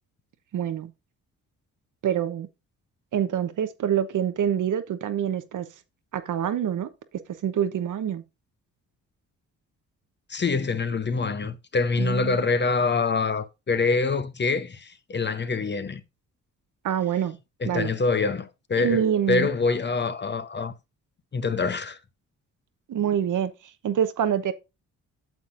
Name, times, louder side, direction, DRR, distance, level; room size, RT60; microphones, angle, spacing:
voice 1, 0.5-0.9 2.0-2.5 3.1-5.7 6.1-6.9 7.4-8.2 12.0-12.4 16.8-17.4 17.6-17.9 18.8-19.5 22.9-23.5 23.8-24.5, right 9 dB, 60° right, 1.0 m, -26 dB
voice 2, 10.3-16.0 17.6-20.7 21.3-22.0, left 4 dB, 30° left, 0.8 m, -25 dB
9.3 x 6.9 x 2.6 m
supercardioid pair, 60°, 34 cm